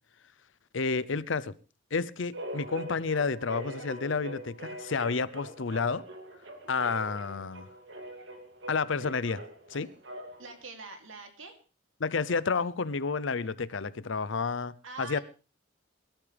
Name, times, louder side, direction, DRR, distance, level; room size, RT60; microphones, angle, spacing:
voice 1, 0.7-1.5 1.9-6.0 6.7-7.7 8.7-9.4 9.7-9.9 12.0-14.7 15.0-15.2, left 4 dB, 70° left, 0.7 m, -30 dB
sound 1, 2.3-10.6, right 1 dB, 60° right, 2.6 m, -42 dB
voice 2, 10.4-11.6 14.8-15.2, right 3 dB, 80° right, 3.0 m, -44 dB
22.5 x 12.5 x 3.4 m
head